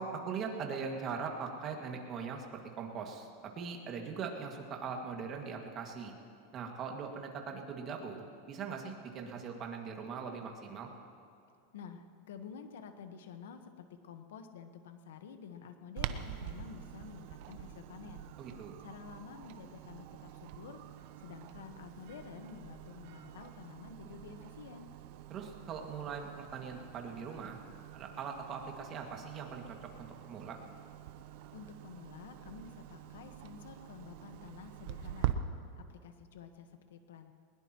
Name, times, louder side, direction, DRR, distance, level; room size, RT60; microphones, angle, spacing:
voice 1, 0.0-6.2 6.5-10.9 18.4-18.7 25.3-27.6 27.9-30.6, right 5 dB, 30° right, 2 dB, 2.1 m, -41 dB
voice 2, 11.7-18.3 18.8-20.8 21.2-24.9 31.5-35.3 35.8-37.3, left 7 dB, 90° left, 7 dB, 1.3 m, -50 dB
Clock, 16.0-35.3, right 13 dB, 55° right, 0.8 m, -45 dB
21.0 x 21.0 x 3.1 m, 2.6 s
supercardioid pair, 145°, 0 cm